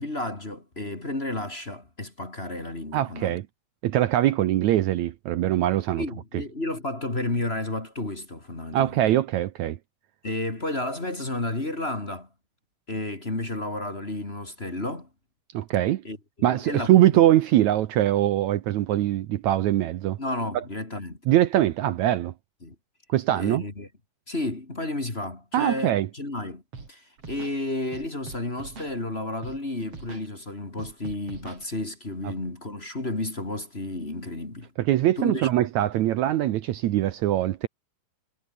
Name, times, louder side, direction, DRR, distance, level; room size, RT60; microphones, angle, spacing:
voice 1, 0.0-3.4 6.0-9.0 10.2-12.3 12.9-15.1 16.0-16.9 20.2-21.2 22.6-22.7 23.4-23.9 24.3-26.6 26.9-34.7 35.2-35.7, left 2 dB, 20° left, 2.8 m, -32 dB
voice 2, 2.9-3.5 3.8-6.1 8.7-9.8 15.5-16.0 16.4-20.2 21.3-22.3 23.1-23.6 25.5-26.1 32.2-32.3 34.8-37.7, right 13 dB, 70° right, 2.1 m, -22 dB
Scratching (performance technique), 26.7-26.9 27.2-27.6 27.9-28.9 29.4-29.6 29.9-30.3 30.8-31.6, right 4 dB, 45° right, 5.2 m, -42 dB
omnidirectional pair, 3.8 m